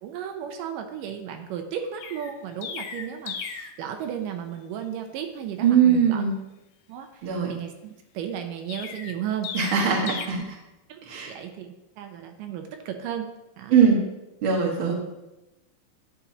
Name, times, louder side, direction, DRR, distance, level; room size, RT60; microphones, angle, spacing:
voice 1, 0.0-6.2 6.9-10.1 10.9-11.0 11.3-13.7, right 9 dB, 85° right, 5 dB, 2.3 m, -34 dB
Chirp tweet, 2.0-3.8 8.7-10.3, left 7 dB, 80° left, 1.6 m, -36 dB
voice 2, 5.6-6.3 7.2-7.5 9.5-10.4 11.1-11.3 13.7-14.0 14.4-14.9, right 7 dB, 50° right, -2 dB, 2.0 m, -21 dB
11.0 x 7.2 x 2.9 m, 0.98 s
omnidirectional pair, 3.8 m